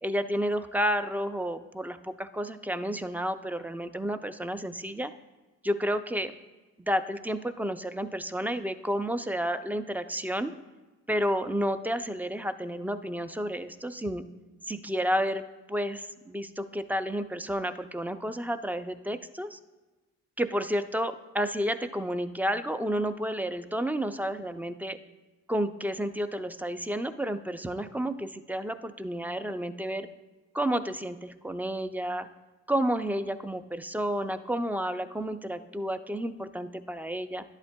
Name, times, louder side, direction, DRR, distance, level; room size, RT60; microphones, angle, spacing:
voice 1, 0.0-5.1 5.6-6.3 6.8-10.5 11.1-14.2 14.7-19.6 20.4-25.0 25.5-30.1 30.5-32.3 32.7-37.4, equal, 5° right, 10 dB, 0.3 m, -31 dB
11.0 x 8.1 x 2.2 m, 1.2 s
cardioid pair, 90°, 30 cm